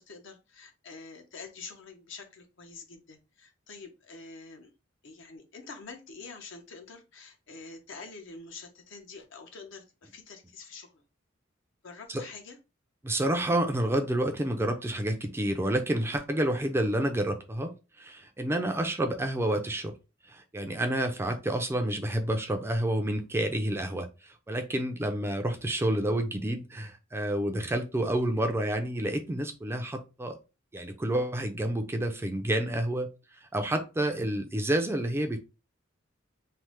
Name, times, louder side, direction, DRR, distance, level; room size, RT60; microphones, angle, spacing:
voice 1, 0.0-4.7 5.0-11.0 11.8-12.6, left 4 dB, 70° left, 5 dB, 0.7 m, -46 dB
voice 2, 13.0-19.9 20.2-30.4 30.7-35.4, right 1 dB, 10° right, 5 dB, 0.4 m, -29 dB
3.2 x 2.0 x 2.9 m, 0.28 s
head